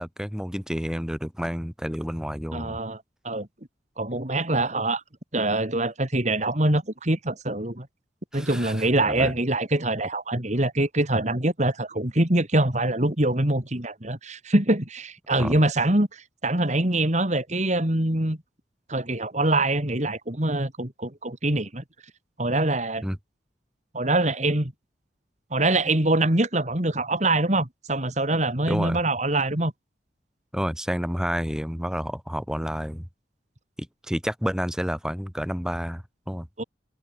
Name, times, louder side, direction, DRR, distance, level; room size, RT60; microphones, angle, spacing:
voice 1, 0.0-2.8 8.3-9.3 15.4-15.5 23.0-23.2 28.7-29.0 30.5-33.1 34.0-36.5, equal, 5° right, 3.9 m, -30 dB
voice 2, 2.5-3.5 4.0-5.0 5.3-7.9 8.3-18.4 18.9-21.8 22.4-23.1 23.9-24.7 25.5-29.7 36.6-36.7, right 2 dB, 40° right, 3.1 m, -24 dB
head